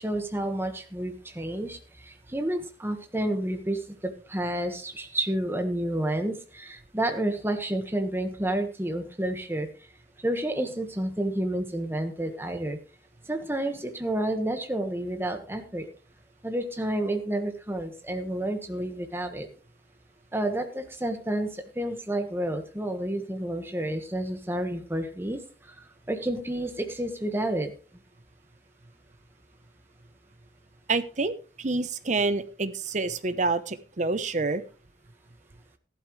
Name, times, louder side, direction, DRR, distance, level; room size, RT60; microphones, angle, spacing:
voice 1, 0.0-9.7 10.2-12.8 13.3-15.9 16.4-19.5 20.3-25.4 25.7-25.8 26.1-27.7, right 1 dB, 15° right, 6 dB, 1.4 m, -30 dB
voice 2, 30.9-34.6, right 3 dB, 40° right, 12 dB, 0.8 m, -28 dB
14.5 x 11.5 x 3.2 m, 0.36 s
head